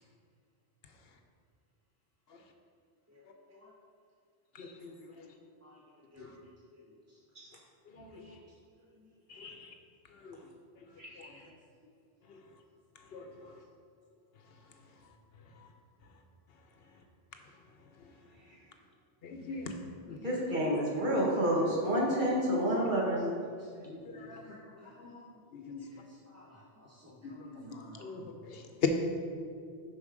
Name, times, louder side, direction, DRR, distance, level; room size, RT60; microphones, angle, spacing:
voice 1, 3.1-3.7 5.2-5.3 5.6-5.8 6.1-6.3 8.1-8.4 13.4-13.5 19.5-19.6 20.1-20.2 23.6-23.7 24.1-25.3 26.3-28.3, left 2 dB, 20° right, -4 dB, 0.6 m, -55 dB
voice 2, 4.6-4.9 6.2-6.3 7.9-8.1 9.3-9.7 10.2-10.4 11.2-11.3 13.1-13.3 19.2-19.7 20.1-20.2 23.9-24.4 25.5-25.8 27.2-28.9, left 6 dB, 70° left, 5 dB, 0.9 m, -39 dB
voice 3, 20.2-23.3 23.7-23.8, equal, 50° right, -4 dB, 1.7 m, -29 dB
7.0 x 5.4 x 5.0 m, 2.2 s
omnidirectional pair, 1.1 m